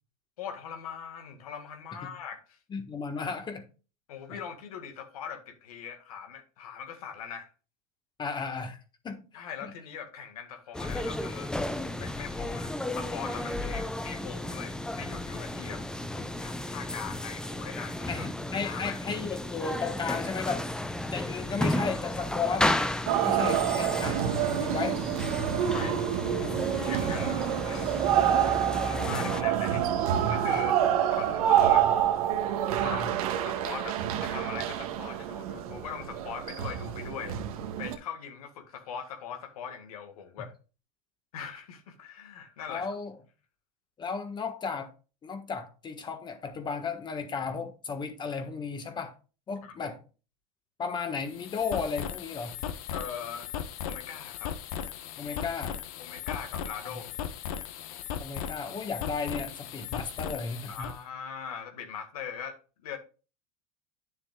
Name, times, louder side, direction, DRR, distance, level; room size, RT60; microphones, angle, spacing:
voice 1, 0.4-2.6 4.1-7.5 9.3-11.5 11.9-15.8 16.1-18.2 18.5-19.0 25.6-26.0 26.4-28.2 28.8-29.8 30.3-30.7 31.1-31.9 32.7-33.0 33.4-37.4 37.8-40.5 41.3-42.9 49.6-49.9 52.9-53.5 53.8-54.5 55.2-55.4 56.0-57.1 60.7-63.0, left 7 dB, 90° left, 1.8 m, -41 dB
voice 2, 2.7-3.7 4.3-4.4 8.2-9.2 9.6-9.7 18.1-20.7 21.1-22.9 23.2-24.2 24.6-25.0 26.4-26.6 32.8-33.1 42.7-43.1 44.0-44.9 45.2-49.1 49.5-50.0 50.8-52.6 55.2-55.8 56.9-57.0 58.2-60.9, left 5 dB, 25° left, 1.5 m, -34 dB
sound 1, 10.7-29.4, left 1 dB, 5° left, 0.6 m, -33 dB
sound 2, 23.1-38.0, right 10 dB, 75° right, 1.5 m, -27 dB
sound 3, 51.2-61.0, left 9 dB, 70° left, 1.2 m, -37 dB
9.3 x 7.2 x 2.4 m
supercardioid pair, 125°, 18 cm